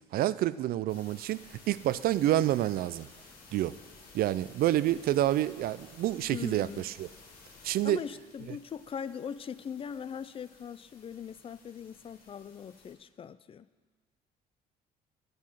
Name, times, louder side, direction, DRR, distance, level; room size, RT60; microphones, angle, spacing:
voice 1, 0.1-3.1 3.5-3.8 4.1-7.1 7.6-8.0, right 13 dB, 65° right, 17 dB, 0.4 m, -28 dB
sound 1, 0.9-12.9, left 3 dB, 65° left, 2.8 m, -55 dB
voice 2, 6.3-6.9 7.8-13.7, left 7 dB, 35° left, 15 dB, 0.4 m, -40 dB
9.7 x 9.4 x 6.4 m, 1.4 s
cardioid pair, 110°, 17 cm